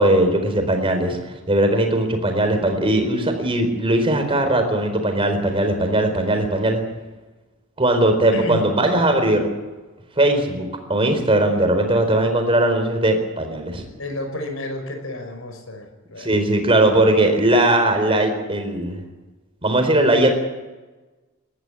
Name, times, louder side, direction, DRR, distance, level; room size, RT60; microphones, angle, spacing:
voice 1, 0.0-6.8 7.8-9.5 10.2-13.8 16.2-19.0 19.6-20.3, right 1 dB, 25° right, 6 dB, 4.3 m, -19 dB
voice 2, 8.3-8.7 14.0-16.3, left 2 dB, 80° left, 6 dB, 5.6 m, -31 dB
20.0 x 14.0 x 9.9 m, 1.2 s
head